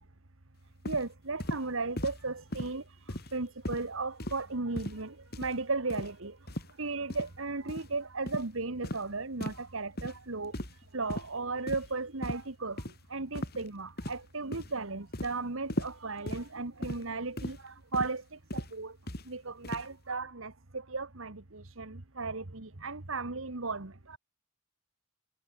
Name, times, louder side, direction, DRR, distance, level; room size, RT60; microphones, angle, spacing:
sound 1, 0.8-1.0 1.4-1.6 2.0-2.2 2.5-2.7 3.1-3.4 3.6-3.9 4.2-4.4 4.8-5.0 5.3-5.5 5.9-6.1 6.5-6.7 7.1-7.3 7.7-7.9 8.3-8.5 8.8-9.0 9.4-9.6 10.0-10.2 10.5-10.8 11.1-11.3 11.7-11.9 12.2-12.4 12.8-12.9 13.3-13.6 14.0-14.3 14.5-14.7 15.1-15.3 15.7-15.9 16.3-16.5 16.8-17.0 17.4-17.6 17.9-18.1 18.5-18.7 19.1-19.2 19.6-19.9, left 1 dB, 50° left, 4.9 m, -37 dB
voice 1, 0.8-2.8 3.3-6.3 6.8-10.5 10.9-12.8 13.1-18.2 18.5-18.9 19.3-24.2, right 3 dB, 70° right, 1.7 m, -35 dB
head